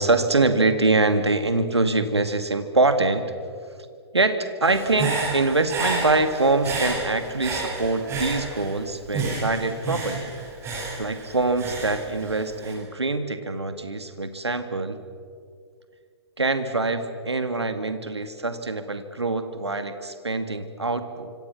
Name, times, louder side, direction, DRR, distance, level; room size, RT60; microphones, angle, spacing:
voice 1, 0.0-3.4 4.1-10.3 11.0-15.0 16.4-21.3, right 3 dB, 80° right, 9 dB, 2.1 m, -24 dB
Human voice / Breathing, 4.6-8.8 9.1-12.7, right 3 dB, 20° right, 6.6 m, -30 dB
26.0 x 25.5 x 6.0 m, 2.2 s
figure-of-eight pair, 115°, 14 cm